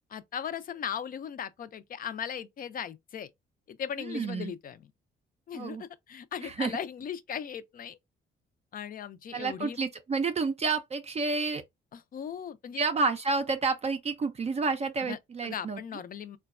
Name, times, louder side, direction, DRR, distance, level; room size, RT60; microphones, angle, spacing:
voice 1, 0.1-3.3 3.7-4.9 5.5-8.0 8.7-9.8 11.9-12.8 15.0-16.4, left 8 dB, 45° left, 0.4 m, -38 dB
voice 2, 4.0-4.5 5.5-5.8 6.4-6.8 9.3-11.6 12.8-15.8, right 4 dB, 35° right, 0.4 m, -30 dB
3.8 x 2.2 x 2.4 m
cardioid pair, 90°, 20 cm